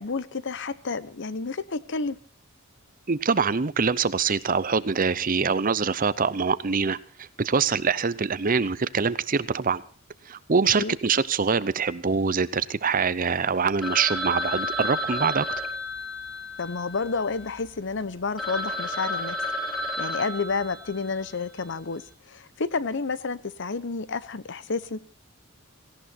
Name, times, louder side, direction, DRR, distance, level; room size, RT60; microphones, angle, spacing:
voice 1, 0.0-2.2 10.8-11.0 16.6-19.4 20.0-22.0 22.3-25.0, left 4 dB, 60° left, 16 dB, 0.9 m, -30 dB
voice 2, 3.1-9.8 10.3-15.5, right 5 dB, 40° right, 16 dB, 0.7 m, -24 dB
Telephone, 13.8-17.6 18.1-18.2 18.4-21.3, left 1 dB, ahead, 3.3 m, -32 dB
18.0 x 16.5 x 4.3 m, 0.39 s
head